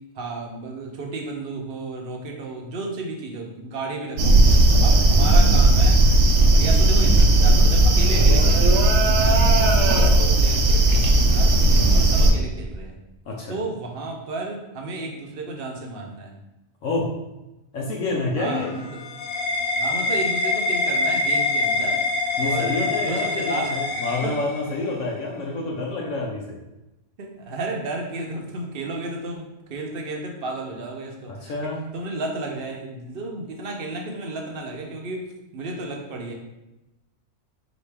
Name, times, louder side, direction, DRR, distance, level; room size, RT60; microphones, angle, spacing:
voice 1, 0.1-6.0 6.5-11.5 11.9-13.0 13.5-16.3 18.4-19.0 19.8-23.7 24.2-24.4 27.2-35.3 35.5-36.3, right 2 dB, 55° right, 1 dB, 0.8 m, -33 dB
sound 1, 4.2-12.3, right 2 dB, 80° right, 1.0 m, -16 dB
voice 2, 13.3-13.6 16.8-17.1 17.7-18.7 22.4-26.6 31.3-31.9, left 3 dB, 80° left, -2 dB, 1.1 m, -28 dB
sound 2, 18.4-24.9, left 3 dB, 65° left, 0.8 m, -25 dB
4.1 x 3.0 x 3.3 m, 0.98 s
omnidirectional pair, 1.4 m